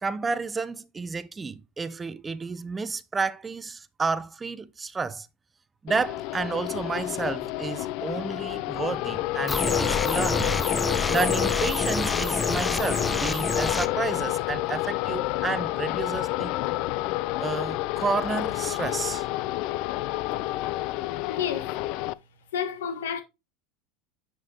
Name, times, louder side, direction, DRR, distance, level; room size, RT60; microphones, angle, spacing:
voice 1, 0.0-5.3 5.8-10.6 11.1-16.5 17.4-19.3, right 4 dB, 20° right, 0.6 m, -31 dB
sound 1, 5.9-22.1, left 18 dB, 60° left, 0.4 m, -29 dB
sound 2, 9.5-13.9, left 3 dB, 15° left, 0.7 m, -27 dB
voice 2, 21.3-21.8 22.5-23.2, left 8 dB, 90° left, 1.5 m, -30 dB
9.8 x 6.1 x 2.9 m
supercardioid pair, 105°, 0 cm